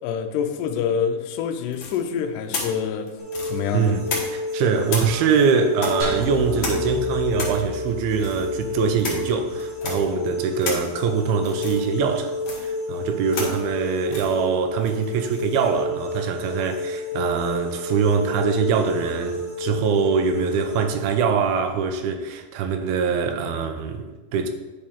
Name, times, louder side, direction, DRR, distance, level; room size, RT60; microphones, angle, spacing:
voice 1, 0.0-3.1 3.5-3.9, left 7 dB, 85° left, 1.9 m, -26 dB
sound 1, 1.7-4.5 4.9-15.8, left 3 dB, 70° left, 1.1 m, -34 dB
sound 2, 3.2-20.8, left 1 dB, 30° right, 0.9 m, -30 dB
voice 2, 3.7-4.0 4.3-24.5, right 6 dB, 80° right, 2.5 m, -23 dB
sound 3, 6.0-10.4, equal, 60° right, 3.5 m, -35 dB
9.7 x 4.4 x 3.6 m
omnidirectional pair, 4.5 m